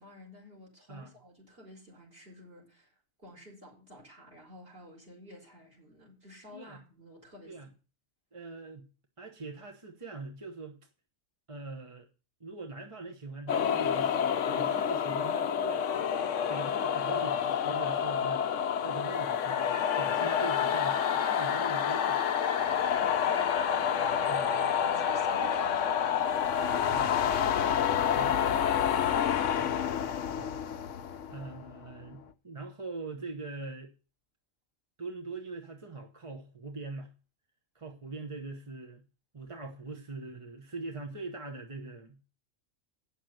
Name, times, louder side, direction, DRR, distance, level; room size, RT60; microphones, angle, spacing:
voice 1, 0.0-7.6 23.2-24.1 24.5-26.8 31.0-31.4, left 1 dB, 45° right, 4.7 m, -52 dB
voice 2, 8.3-8.9 9.2-10.8 11.5-12.1 12.4-15.8 16.5-18.5 18.8-22.2 24.3-24.4 26.9-27.5 28.1-28.4 29.6-29.7 30.4-30.5 31.3-33.9 35.0-37.1 37.7-39.0 39.3-42.2, right 3 dB, 25° right, 1.0 m, -42 dB
sound 1, 13.5-32.0, left 8 dB, 75° left, 1.0 m, -28 dB
sound 2, 22.6-28.0, right 8 dB, 85° right, 1.2 m, -49 dB
8.9 x 6.6 x 7.8 m
omnidirectional pair, 1.3 m